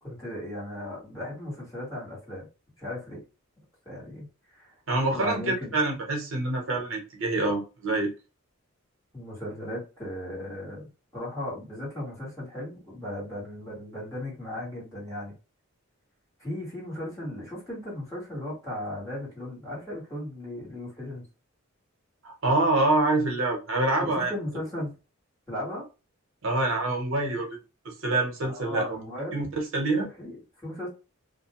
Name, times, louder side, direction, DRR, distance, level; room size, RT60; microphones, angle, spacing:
voice 1, 0.0-2.5 2.8-3.2 3.8-4.3 4.5-4.7 5.1-5.8 6.8-7.0 9.1-15.3 16.4-21.2 24.0-24.9 25.5-25.8 28.4-29.4 29.9-30.9, left 1 dB, 15° left, 1.4 m, -36 dB
voice 2, 4.9-8.1 22.2-24.3 26.4-27.5 27.8-29.0 29.3-30.1, right 2 dB, 65° right, 0.8 m, -26 dB
2.5 x 2.1 x 2.8 m
head